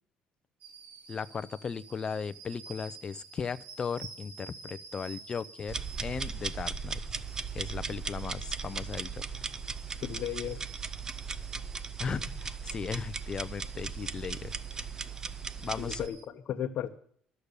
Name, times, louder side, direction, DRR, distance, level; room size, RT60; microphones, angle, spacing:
sound 1, 0.6-16.3, right 5 dB, 75° right, 2.2 m, -51 dB
voice 1, 1.1-7.0 7.5-9.2 12.0-14.9 15.6-16.0, left 6 dB, 30° left, 14 dB, 0.5 m, -37 dB
sound 2, 5.7-16.1, right 5 dB, 25° right, 0.6 m, -37 dB
voice 2, 10.0-10.6 15.8-16.9, left 10 dB, 55° left, 2 dB, 0.9 m, -35 dB
13.0 x 6.9 x 8.1 m, 0.63 s
cardioid pair, 120°, 3 cm